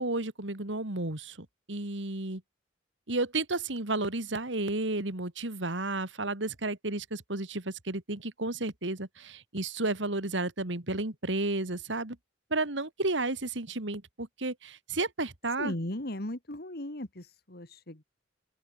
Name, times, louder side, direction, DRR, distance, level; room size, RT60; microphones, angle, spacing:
voice 1, 0.0-2.4 3.1-12.2 12.5-15.7, right 2 dB, 75° right, 2.6 m, -32 dB
voice 2, 15.6-18.0, left 1 dB, 55° left, 2.8 m, -37 dB
open air
head